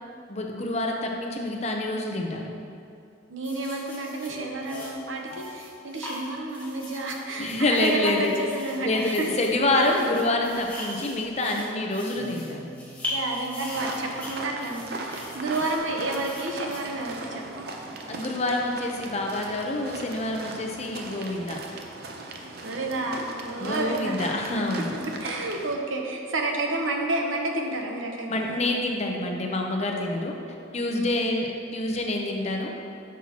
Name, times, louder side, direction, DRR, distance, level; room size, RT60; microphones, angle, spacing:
voice 1, 0.3-2.5 7.4-8.3 8.8-12.7 18.1-21.6 23.6-24.9 28.3-30.4 30.7-32.7, left 2 dB, 35° left, 1 dB, 0.7 m, -27 dB
voice 2, 3.3-9.3 13.1-17.7 22.6-24.1 24.9-28.6 30.9-31.2, right 2 dB, 80° right, 2 dB, 0.9 m, -30 dB
sound 1, 3.4-17.5 18.3-18.5, left 1 dB, 10° left, 1.4 m, -40 dB
sound 2, 4.2-6.6 7.2-8.1 9.7-15.8, equal, 70° left, 1.3 m, -48 dB
sound 3, 13.7-25.8, right 2 dB, 50° right, 0.6 m, -38 dB
9.9 x 6.1 x 2.9 m, 2.5 s
head